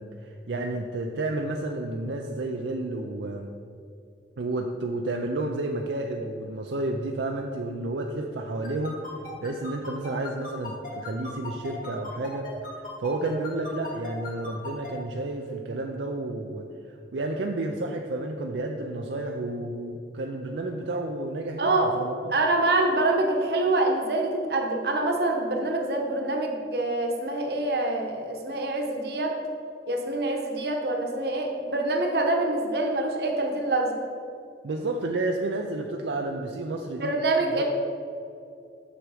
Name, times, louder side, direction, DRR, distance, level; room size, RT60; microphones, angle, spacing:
voice 1, 0.0-3.5 4.4-9.1 9.4-22.3 34.6-37.1 37.5-37.6, right 2 dB, 80° right, 2 dB, 0.5 m, -31 dB
sound 1, 8.6-14.9, left 3 dB, 50° left, 2.1 m, -38 dB
voice 2, 21.6-21.9 22.3-29.3 29.9-33.9 37.0-37.6, right 2 dB, 60° right, 2 dB, 1.1 m, -25 dB
7.6 x 6.4 x 4.9 m, 2.5 s
head